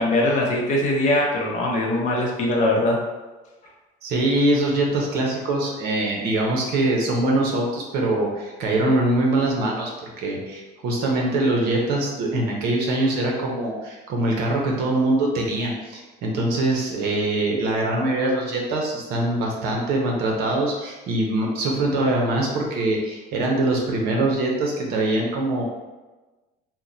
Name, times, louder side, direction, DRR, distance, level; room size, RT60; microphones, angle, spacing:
voice 1, 0.0-3.0, left 1 dB, 45° left, -1 dB, 0.7 m, -21 dB
voice 2, 4.0-25.6, right 2 dB, 60° right, -1 dB, 0.8 m, -23 dB
2.9 x 2.1 x 3.8 m, 1.2 s
cardioid pair, 160°, 18 cm